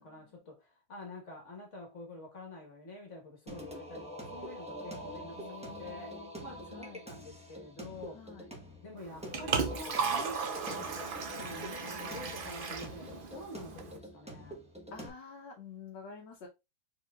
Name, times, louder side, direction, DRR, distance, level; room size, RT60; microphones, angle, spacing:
voice 1, 0.0-5.4 5.8-8.3 8.8-11.0 11.3-14.7, left 2 dB, 45° left, 1.6 m, -48 dB
Singing, 3.5-15.1, equal, 5° right, 0.7 m, -45 dB
voice 2, 5.3-6.3 6.7-7.0 8.1-8.4 14.9-16.5, left 5 dB, 85° left, 1.6 m, -49 dB
Liquid, 9.0-14.0, right 5 dB, 75° right, 0.4 m, -36 dB
4.5 x 4.0 x 2.4 m
omnidirectional pair, 1.9 m